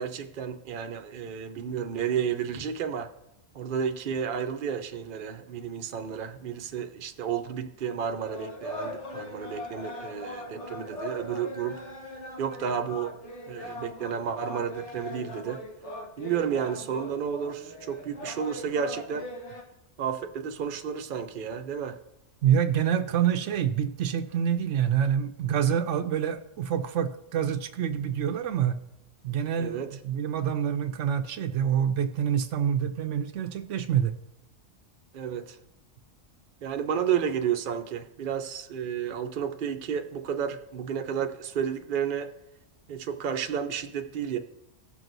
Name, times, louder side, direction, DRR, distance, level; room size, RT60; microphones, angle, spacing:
voice 1, 0.0-3.1 3.5-11.8 12.4-13.1 13.5-15.6 16.2-19.3 20.0-22.0 29.6-29.9 35.1-35.6 36.6-42.3 42.9-44.4, right 7 dB, 50° right, 5 dB, 0.8 m, -31 dB
sound 1, 8.2-19.6, left 1 dB, 70° left, 1.5 m, -40 dB
voice 2, 22.4-28.8 29.2-34.1, right 9 dB, 85° right, 8 dB, 1.0 m, -26 dB
17.0 x 6.1 x 2.6 m, 0.87 s
omnidirectional pair, 1.2 m